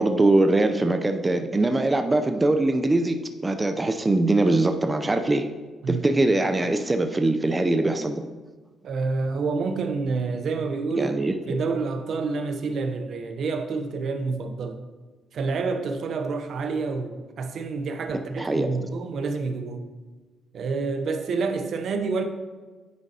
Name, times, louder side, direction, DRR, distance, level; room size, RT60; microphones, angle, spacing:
voice 1, 0.0-3.2 3.4-5.5 5.9-8.2 11.0-11.3 18.4-18.7, right 2 dB, 20° right, 6 dB, 0.5 m, -22 dB
voice 2, 8.8-11.2 11.5-14.8 15.3-19.8 20.5-22.2, right 4 dB, 65° right, 7 dB, 0.6 m, -28 dB
9.4 x 5.1 x 2.8 m, 1.3 s
cardioid pair, 90°, 0 cm